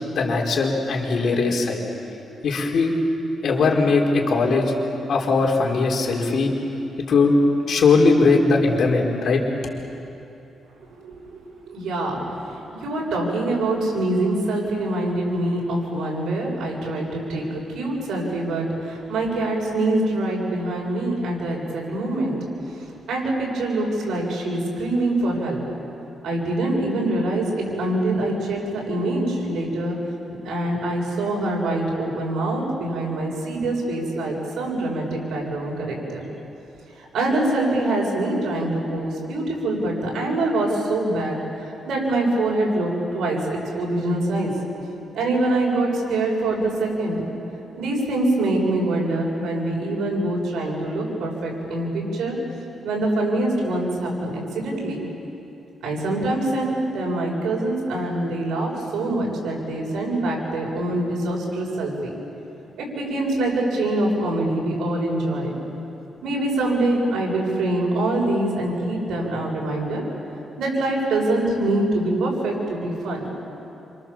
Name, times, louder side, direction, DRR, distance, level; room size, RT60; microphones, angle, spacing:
voice 1, 0.1-1.8 2.4-2.9 3.4-4.7 5.1-6.5 7.1-7.4 7.7-9.4, left 4 dB, 65° left, 0 dB, 4.5 m, -19 dB
voice 2, 11.0-22.4 22.7-22.8 23.1-25.6 26.2-30.0 30.4-36.2 37.0-41.4 41.9-44.5 45.1-47.2 47.8-52.4 52.8-55.0 55.8-62.1 62.8-65.5 66.2-70.0 70.6-73.3, right 2 dB, 80° right, -2 dB, 7.7 m, -24 dB
28.5 x 27.0 x 7.5 m, 2.9 s
cardioid pair, 105°, 0 cm